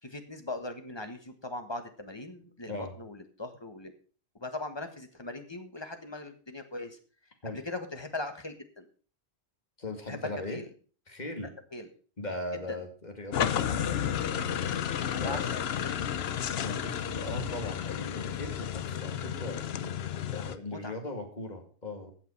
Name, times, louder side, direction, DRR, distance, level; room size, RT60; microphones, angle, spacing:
voice 1, 0.0-3.9 4.3-7.0 7.4-8.9 10.1-10.7 11.7-11.9 12.7-12.8 15.0-16.2 20.7-20.9, left 2 dB, 25° left, 7 dB, 1.5 m, -40 dB
voice 2, 9.8-10.6 11.1-11.5 12.2-14.5 15.1-15.5 16.6-19.9 20.3-22.1, left 1 dB, 40° left, 4 dB, 2.4 m, -39 dB
sound 1, 13.3-20.6, left 9 dB, 70° left, 0.9 m, -32 dB
15.5 x 5.9 x 5.5 m, 0.40 s
omnidirectional pair, 1.1 m